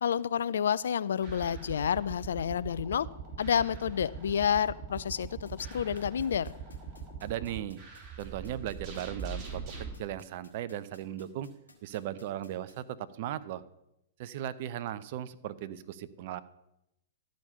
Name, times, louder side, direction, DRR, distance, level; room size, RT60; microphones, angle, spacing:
voice 1, 0.0-3.1 3.4-6.5, left 8 dB, 65° left, 17 dB, 0.4 m, -29 dB
sound 1, 1.2-9.9, right 5 dB, 30° right, 3.9 m, -42 dB
sound 2, 5.0-12.7, left 2 dB, 80° left, 1.9 m, -58 dB
voice 2, 7.2-7.8 8.2-9.6 10.0-11.5 11.8-13.6 14.2-16.4, right 12 dB, 50° right, 14 dB, 0.6 m, -37 dB
12.5 x 5.1 x 6.8 m, 0.86 s
figure-of-eight pair, 105°, 0 cm